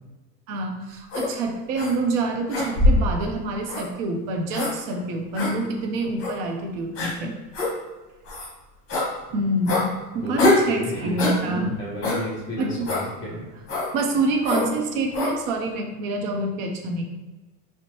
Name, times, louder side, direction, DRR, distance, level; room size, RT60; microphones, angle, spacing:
voice 1, 0.5-7.4 9.3-11.8 12.6-12.9 13.9-17.0, right 2 dB, 55° right, 3 dB, 0.7 m, -27 dB
sound 1, 1.1-1.3 1.8-1.9 2.5-3.1 3.7-3.9 4.5-4.7 5.4-5.5 6.2-6.3 7.0-7.1 7.5-7.7 8.3-8.5 8.9-9.1 9.7-9.9 10.4-10.7 11.2-11.4 12.0-12.2 12.9-13.1 13.7-13.9 14.4-14.7 15.1-15.3, left 2 dB, 30° left, 0.9 m, -22 dB
voice 2, 10.2-11.1 11.8-13.5, equal, 10° left, -8 dB, 0.4 m, -34 dB
2.6 x 2.1 x 2.9 m, 1.2 s
hypercardioid pair, 105°, 48 cm